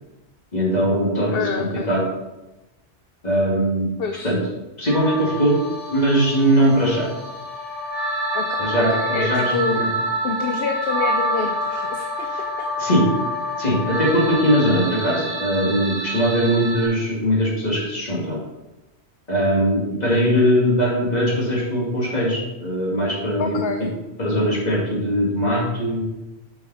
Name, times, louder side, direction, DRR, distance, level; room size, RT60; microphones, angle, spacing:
voice 1, 0.5-2.0 3.2-3.9 4.2-4.4 4.8-5.6 5.9-7.1 8.6-9.9 12.8-13.0 13.6-18.4 19.3-23.6 24.2-26.0, equal, 35° left, -4 dB, 2.4 m, -20 dB
voice 2, 1.3-1.9 4.0-4.3 8.3-9.8 10.2-12.3 12.6-12.7 23.4-23.9, left 5 dB, 60° left, 5 dB, 0.8 m, -27 dB
sound 1, 4.9-16.9, equal, 55° right, 1.9 m, -27 dB
7.6 x 5.8 x 4.1 m, 1.0 s
omnidirectional pair, 1.2 m